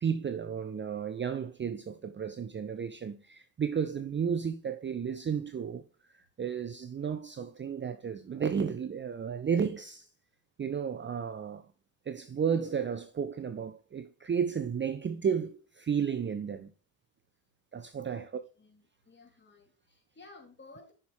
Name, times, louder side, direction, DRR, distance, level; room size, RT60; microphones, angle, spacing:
voice 1, 0.0-10.1 10.6-11.7 12.0-16.7 17.7-18.3, right 7 dB, 25° right, 0.8 m, -33 dB
voice 2, 18.6-20.9, left 3 dB, 20° left, 3.9 m, -54 dB
9.3 x 6.2 x 3.6 m
hypercardioid pair, 75°, 48 cm